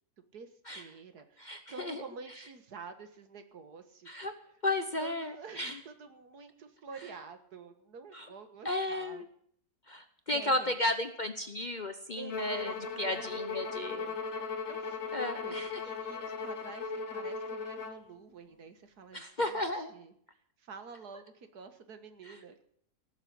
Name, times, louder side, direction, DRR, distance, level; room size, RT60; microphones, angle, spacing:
voice 1, 0.3-4.1 5.0-9.2 10.3-10.7 12.2-13.3 13.7-20.1 20.6-22.6, right 5 dB, 75° right, 8 dB, 2.0 m, -49 dB
voice 2, 1.4-2.0 4.1-4.3 4.6-5.8 8.1-8.3 8.6-9.3 9.9-14.1 15.1-15.8 19.1-19.9 22.3-22.4, left 1 dB, 40° left, 8 dB, 0.8 m, -34 dB
Bowed string instrument, 12.3-18.0, left 4 dB, 55° left, 1.6 m, -37 dB
18.0 x 7.4 x 8.6 m, 0.66 s
omnidirectional pair, 1.7 m